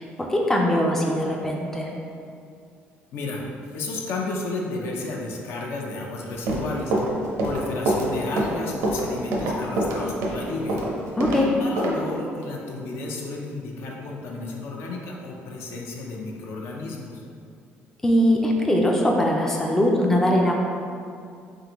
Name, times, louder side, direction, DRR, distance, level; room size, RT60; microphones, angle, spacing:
voice 1, 0.0-1.9 11.2-11.5 18.0-20.5, equal, 10° left, -1 dB, 0.4 m, -21 dB
voice 2, 3.1-3.4 3.7-6.9 7.4-10.8 11.4-17.2, left 2 dB, 65° left, -1 dB, 0.6 m, -32 dB
Run, 6.3-11.4 11.8-11.9, right 1 dB, 85° right, 0.7 m, -25 dB
3.7 x 3.4 x 2.9 m, 2.4 s
cardioid pair, 125°, 4 cm